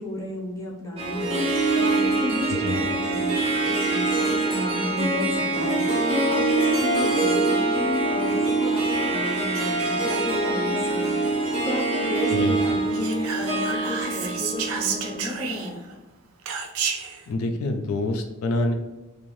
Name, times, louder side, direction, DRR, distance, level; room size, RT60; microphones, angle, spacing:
voice 1, 0.0-1.4 1.7-11.2 11.6-15.9, left 1 dB, 15° left, -4 dB, 0.6 m, -32 dB
Harp, 1.0-15.5, right 2 dB, 25° right, 0.6 m, -24 dB
voice 2, 2.5-2.8 12.3-12.6 17.3-18.7, left 2 dB, 75° left, 5 dB, 0.3 m, -26 dB
Whispering, 12.9-15.9 16.5-17.2, right 6 dB, 75° right, 0.4 m, -30 dB
2.6 x 2.4 x 3.1 m, 1.1 s
head